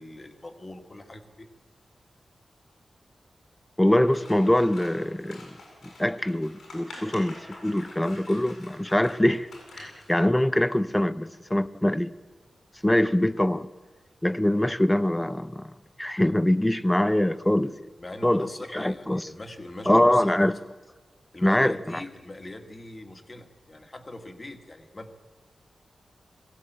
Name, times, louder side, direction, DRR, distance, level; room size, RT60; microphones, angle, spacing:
voice 1, 0.0-1.5 9.8-9.9 18.0-20.6 21.3-25.2, left 1 dB, 30° left, 1.8 m, -42 dB
voice 2, 3.8-5.6 5.8-9.5 9.7-12.1 12.8-13.7 14.2-15.7 16.0-17.7 18.2-18.5 18.7-19.3 19.9-20.6 21.4-22.0, left 1 dB, 10° left, 0.6 m, -23 dB
Scissors, 4.0-10.1, left 2 dB, 85° left, 7.6 m, -47 dB
21.5 x 16.0 x 9.2 m
wide cardioid pair, 110°, 0 cm